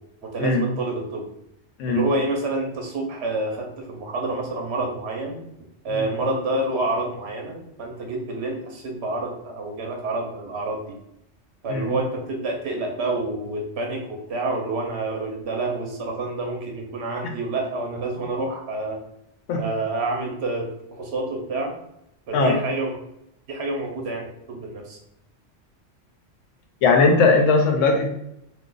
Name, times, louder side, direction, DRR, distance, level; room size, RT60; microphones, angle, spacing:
voice 1, 0.2-1.3 1.9-5.4 5.8-11.0 11.6-19.0 19.6-21.7 22.3-22.9 23.5-25.0, right 2 dB, 60° right, 1 dB, 1.0 m, -28 dB
voice 2, 26.8-28.1, left 3 dB, 85° left, 2 dB, 0.9 m, -19 dB
2.6 x 2.4 x 3.7 m, 0.80 s
omnidirectional pair, 1.3 m